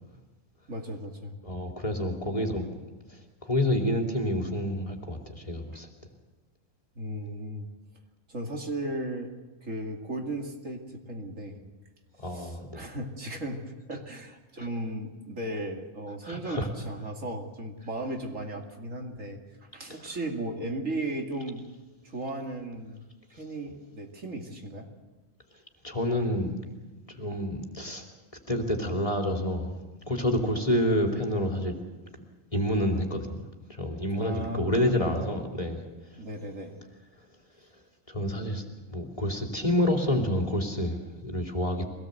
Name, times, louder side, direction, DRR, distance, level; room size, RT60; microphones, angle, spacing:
voice 1, 0.7-1.4 5.7-5.8 7.0-7.7 8.3-9.4 9.6-11.6 12.1-19.4 19.7-21.7 22.0-23.0 23.3-24.9 34.2-35.2 36.2-36.8, right 1 dB, 70° right, 2 dB, 2.9 m, -36 dB
voice 2, 1.4-2.6 3.1-5.9 12.2-12.8 14.6-14.7 16.2-16.7 20.0-20.1 23.7-23.8 25.8-26.6 27.1-28.0 28.5-29.8 30.1-31.7 32.5-33.4 33.7-35.8 38.1-41.8, left 1 dB, 25° left, 2 dB, 3.0 m, -28 dB
24.0 x 18.5 x 8.0 m, 1.2 s
omnidirectional pair, 1.4 m